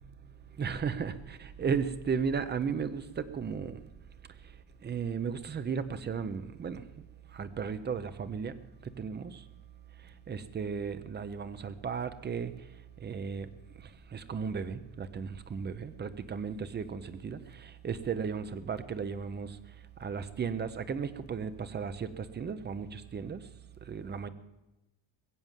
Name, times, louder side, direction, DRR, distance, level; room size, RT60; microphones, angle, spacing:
voice 1, 0.6-3.8 4.8-6.8 7.3-8.5 9.0-9.4 10.3-12.5 13.0-13.5 14.1-19.6 20.0-23.4 23.9-24.3, right 6 dB, 20° right, 0.7 m, -35 dB
21.5 x 7.9 x 7.4 m
cardioid pair, 165°, 47 cm